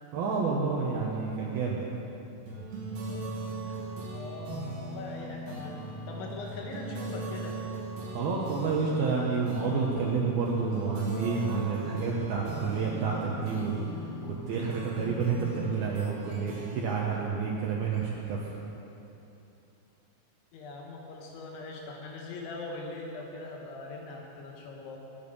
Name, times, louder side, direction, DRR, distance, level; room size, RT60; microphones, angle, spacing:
voice 1, 0.1-1.8 8.1-13.8 14.5-18.6, right 5 dB, 90° right, -3 dB, 2.1 m, -29 dB
sound 1, 2.5-18.3, right 2 dB, 65° right, 4.4 m, -39 dB
voice 2, 3.6-7.6 20.5-25.0, left 3 dB, 75° left, 0 dB, 3.3 m, -41 dB
21.0 x 7.2 x 5.4 m, 2.9 s
omnidirectional pair, 5.9 m